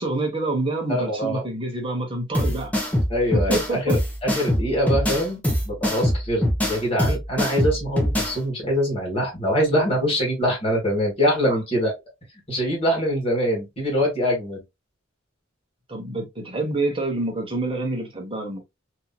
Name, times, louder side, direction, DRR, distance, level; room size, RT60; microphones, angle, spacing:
voice 1, 0.0-2.7 3.3-4.0 11.4-11.6 15.9-18.6, right 2 dB, 25° right, 1.0 m, -27 dB
voice 2, 0.9-1.4 3.1-11.9 12.5-14.6, equal, 30° left, 1.5 m, -24 dB
sound 1, 2.3-8.3, equal, 5° left, 0.9 m, -23 dB
2.9 x 2.7 x 2.2 m
head